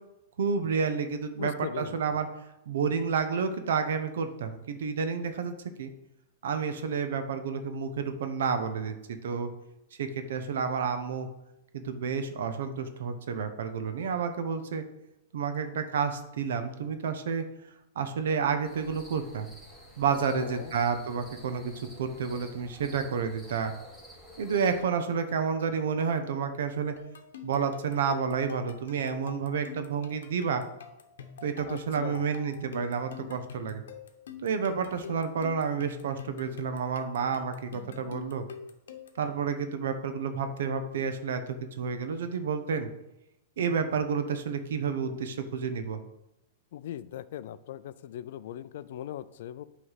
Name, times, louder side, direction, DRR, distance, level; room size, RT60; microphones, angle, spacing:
voice 1, 0.4-2.3 2.7-5.9 6.4-9.5 10.0-11.3 11.7-14.8 15.3-17.4 18.0-19.5 20.0-23.7 24.4-26.9 27.4-30.6 31.4-33.8 34.4-38.4 39.2-42.9 43.6-46.0, right 6 dB, 80° right, 8 dB, 0.8 m, -30 dB
voice 2, 1.4-2.0 20.3-20.7 31.7-32.2 46.7-49.6, left 11 dB, 60° left, 15 dB, 0.3 m, -39 dB
sound 1, 18.6-24.8, equal, 5° right, 1.6 m, -50 dB
sound 2, 27.0-39.3, left 6 dB, 90° left, 0.8 m, -46 dB
8.0 x 3.2 x 5.6 m, 0.88 s
supercardioid pair, 155°, 0 cm